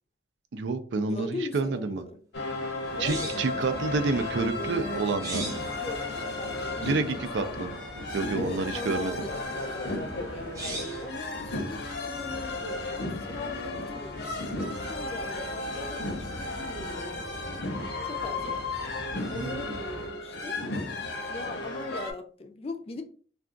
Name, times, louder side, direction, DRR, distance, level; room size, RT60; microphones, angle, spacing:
voice 1, 0.5-2.0 3.0-5.7 6.8-7.7 8.1-9.1 19.3-19.6, right 3 dB, 85° right, 0.4 m, -29 dB
voice 2, 1.1-2.2 3.0-3.9 5.8-7.7 8.3-10.3 11.0-18.7 19.0-20.6 21.3-23.0, left 3 dB, 35° left, 0.4 m, -41 dB
sound 1, 2.3-22.1, left 2 dB, 75° left, 0.7 m, -34 dB
sound 2, 2.6-16.4, right 1 dB, 20° right, 0.7 m, -46 dB
sound 3, 2.8-20.1, equal, 60° right, 0.8 m, -44 dB
2.3 x 2.3 x 3.7 m
head